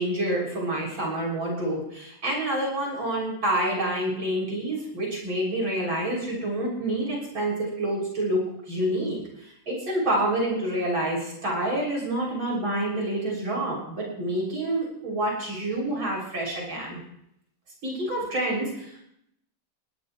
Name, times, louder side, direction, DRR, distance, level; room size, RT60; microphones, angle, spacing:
voice 1, 0.0-8.4 8.7-17.0 17.8-19.0, right 1 dB, 85° right, -2 dB, 7.5 m, -28 dB
21.5 x 17.5 x 3.2 m, 0.74 s
omnidirectional pair, 2.1 m